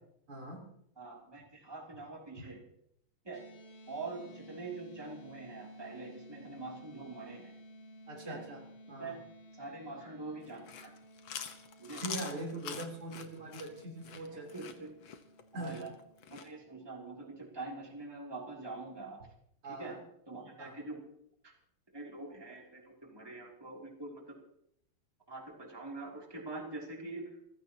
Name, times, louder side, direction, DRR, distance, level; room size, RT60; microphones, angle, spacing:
voice 1, 0.3-0.7 2.4-2.5 8.1-9.2 11.9-14.5 15.5-15.9 19.6-20.0 20.6-20.8, right 2 dB, 80° right, 0 dB, 4.6 m, -42 dB
voice 2, 1.0-2.6 3.2-3.4 3.9-7.5 8.2-8.4 9.0-9.2 9.5-10.9 11.8-12.0 14.5-15.0 15.5-15.9 16.3-19.2 19.6-20.0 20.3-21.0 21.4-21.5 21.9-24.4 25.3-27.4, right 3 dB, 10° right, -1 dB, 2.9 m, -44 dB
sound 1, 3.3-17.7, equal, 35° left, 1.3 m, -55 dB
Chewing mastication, 10.5-16.5, left 8 dB, 65° left, 1.9 m, -44 dB
28.5 x 15.0 x 2.9 m, 0.73 s
omnidirectional pair, 2.4 m